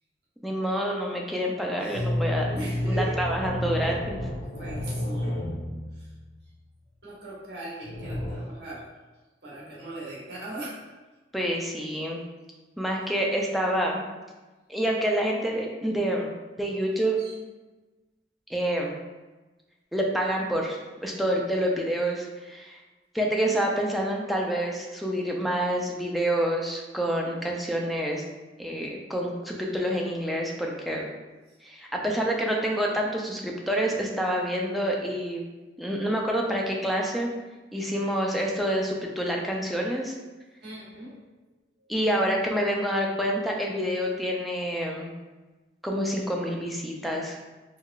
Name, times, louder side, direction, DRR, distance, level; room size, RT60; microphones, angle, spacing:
voice 1, 0.4-2.6 2.9-4.2 11.3-12.2 12.8-14.0 14.7-16.3 16.6-17.2 18.5-18.9 19.9-22.8 23.1-28.2 28.6-31.1 31.6-35.4 35.8-37.3 37.7-40.1 41.9-45.1 45.8-47.4, equal, ahead, -1 dB, 0.4 m, -27 dB
sound 1, 1.9-6.2 7.8-8.4, left 1 dB, 50° left, 0.7 m, -30 dB
voice 2, 2.5-3.2 4.6-5.5 5.9-6.1 7.0-8.9 9.4-10.9 17.2-17.4 40.6-41.2 41.8-41.9, right 2 dB, 65° right, -6 dB, 1.2 m, -39 dB
4.6 x 2.3 x 2.4 m, 1.2 s
head